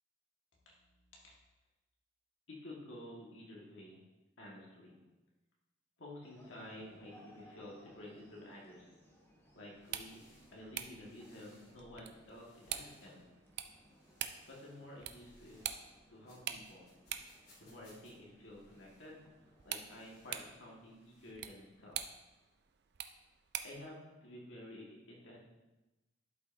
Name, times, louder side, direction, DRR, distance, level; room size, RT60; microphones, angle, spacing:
voice 1, 2.5-4.0 4.4-5.0 6.0-8.9 9.5-10.2 10.5-13.2 14.5-15.6 16.1-16.9 17.6-22.0 23.6-25.4, left 1 dB, 90° left, -4 dB, 1.8 m, -51 dB
sound 1, 6.2-20.4, equal, 15° left, 1.2 m, -64 dB
sound 2, 9.7-23.9, right 10 dB, 60° right, 0.5 m, -47 dB
sound 3, 9.8-11.8 12.2-13.3 13.8-15.9 16.2-18.1 18.5-19.2 19.6-21.3, left 1 dB, 55° left, 2.9 m, -69 dB
11.5 x 5.5 x 2.7 m, 1.0 s
head